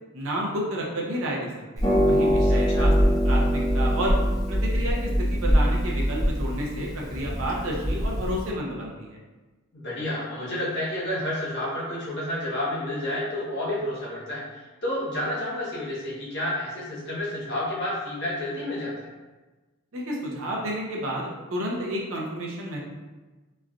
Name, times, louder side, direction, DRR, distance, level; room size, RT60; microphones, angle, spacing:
voice 1, 0.1-4.2 4.5-9.2 19.9-22.8, equal, 65° right, -2 dB, 0.6 m, -31 dB
Harp, 1.8-8.5, equal, 15° left, 0.5 m, -23 dB
voice 2, 2.4-2.9 9.7-19.1, left 1 dB, 50° left, -7 dB, 1.0 m, -30 dB
3.1 x 2.4 x 2.4 m, 1.2 s
head